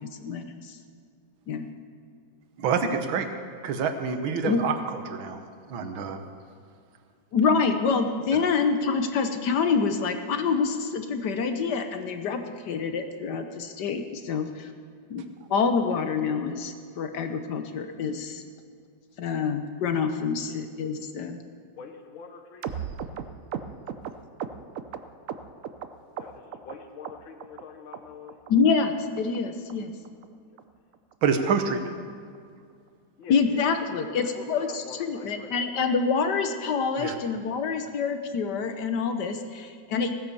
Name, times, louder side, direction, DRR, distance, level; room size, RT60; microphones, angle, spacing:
voice 1, 0.0-0.8 1.5-1.7 4.4-4.6 7.3-14.7 15.1-15.2 15.5-18.4 19.2-21.4 28.5-29.9 33.3-40.1, left 5 dB, 65° left, 7 dB, 1.4 m, -26 dB
voice 2, 2.6-3.3 3.6-5.4 5.7-6.2 8.3-8.4 31.2-31.9 37.0-37.2, right 6 dB, 90° right, 8 dB, 1.8 m, -27 dB
voice 3, 21.8-22.8 26.1-28.4 33.2-36.1, left 5 dB, 90° left, 5 dB, 1.9 m, -44 dB
sound 1, 22.6-25.9 26.2-26.7 27.0-27.6 27.9-28.0 28.3-28.5 28.8-28.9 29.2-29.4 29.7-29.8 30.0-30.3 30.6-30.7 30.9-31.1 31.5-31.6 31.8-32.0 32.3-32.4, right 8 dB, 65° right, 0.8 m, -36 dB
16.5 x 9.7 x 6.9 m, 2.2 s
omnidirectional pair, 2.1 m